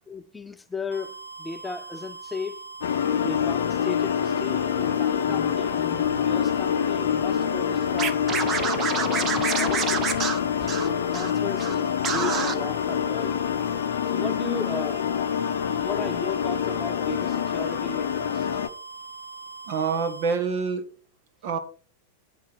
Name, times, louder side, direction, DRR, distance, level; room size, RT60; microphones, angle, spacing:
voice 1, 0.1-2.6 3.2-8.3 8.8-10.0 11.1-13.6 14.1-15.1 15.8-18.5, left 3 dB, 10° left, 0.5 m, -36 dB
sound 1, 0.9-20.4, right 4 dB, 85° right, 1.1 m, -41 dB
sound 2, 2.8-18.7, left 8 dB, 60° left, 0.7 m, -26 dB
Scratching (performance technique), 8.0-11.3 11.6-11.7 12.0-12.5, right 6 dB, 25° right, 1.0 m, -27 dB
voice 2, 19.7-20.9 21.4-21.6, right 5 dB, 50° right, 1.7 m, -26 dB
8.5 x 7.9 x 4.4 m
figure-of-eight pair, 90°, 0 cm